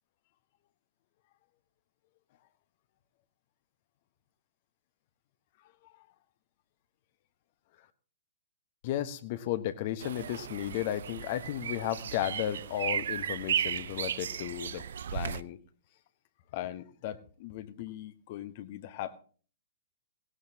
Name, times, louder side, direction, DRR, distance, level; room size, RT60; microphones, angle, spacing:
voice 1, 8.8-14.8 15.1-15.6 16.5-19.2, left 12 dB, 40° left, 12 dB, 1.0 m, -35 dB
sound 1, 10.0-15.4, right 8 dB, 60° right, 0.5 m, -35 dB
18.0 x 17.5 x 2.8 m, 0.42 s
figure-of-eight pair, 115°, 0 cm